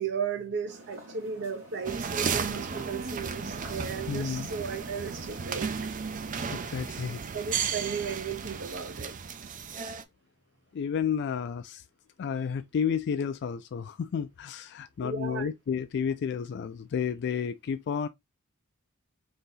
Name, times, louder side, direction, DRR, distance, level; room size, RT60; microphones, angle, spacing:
voice 1, 0.0-5.8 7.1-9.2 15.0-15.5, right 6 dB, 55° right, 0.8 m, -35 dB
sound 1, 0.7-5.8, right 1 dB, 90° right, 2.0 m, -49 dB
sound 2, 1.8-10.0, right 6 dB, 40° right, 0.5 m, -34 dB
voice 2, 4.1-4.5 6.5-7.2 10.7-11.8 12.2-18.1, left 7 dB, 55° left, 0.3 m, -31 dB
4.0 x 2.7 x 3.8 m
head